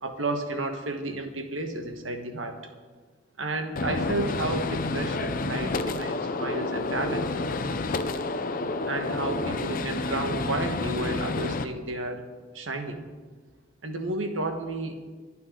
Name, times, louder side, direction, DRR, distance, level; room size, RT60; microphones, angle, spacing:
voice 1, 0.0-2.6 3.4-7.3 8.9-12.2 12.5-13.1 13.8-15.0, right 2 dB, 75° right, 6 dB, 1.5 m, -32 dB
Gunshot gunfire, 3.8-11.6, left 3 dB, 45° left, 0.7 m, -29 dB
23.0 x 9.3 x 3.9 m, 1.4 s
head